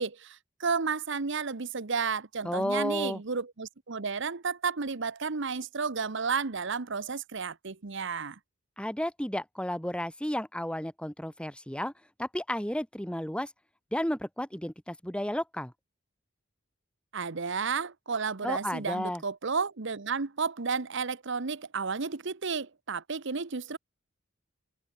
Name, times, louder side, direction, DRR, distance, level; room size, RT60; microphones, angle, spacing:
voice 1, 0.0-8.4 17.1-23.8, right 5 dB, 65° right, 1.1 m, -32 dB
voice 2, 2.4-3.2 8.8-11.9 12.2-13.5 13.9-15.7 18.4-19.2, left 1 dB, 5° left, 2.7 m, -32 dB
head